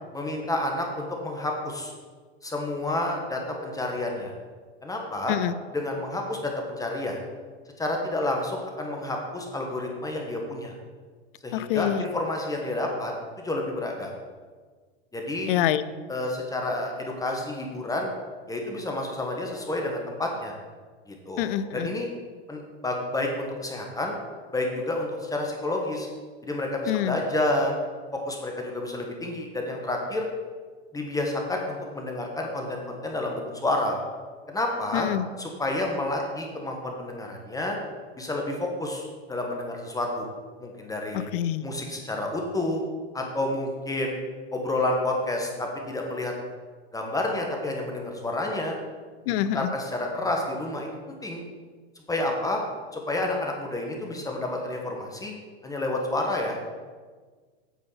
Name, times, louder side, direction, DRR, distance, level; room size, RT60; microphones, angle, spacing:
voice 1, 0.1-1.9 2.4-4.3 4.8-5.4 5.7-7.3 7.8-10.7 11.4-13.1 13.4-14.1 15.1-15.5 16.1-18.1 18.5-20.5 21.1-22.1 22.5-24.1 24.5-26.1 26.4-27.8 28.1-30.3 30.9-34.0 34.5-35.1 35.4-37.8 38.2-40.3 40.6-41.3 41.6-42.8 43.1-44.2 44.5-46.3 46.9-48.8 49.5-51.4 52.1-52.6 52.9-55.3 55.6-56.6, left 2 dB, 10° left, 1 dB, 1.2 m, -29 dB
voice 2, 11.5-12.0 15.5-15.8 21.4-21.9 26.9-27.2 34.9-35.3 41.1-41.7 49.3-49.7, left 12 dB, 55° left, 14 dB, 0.5 m, -26 dB
8.3 x 4.3 x 5.6 m, 1.5 s
hypercardioid pair, 110°, 32 cm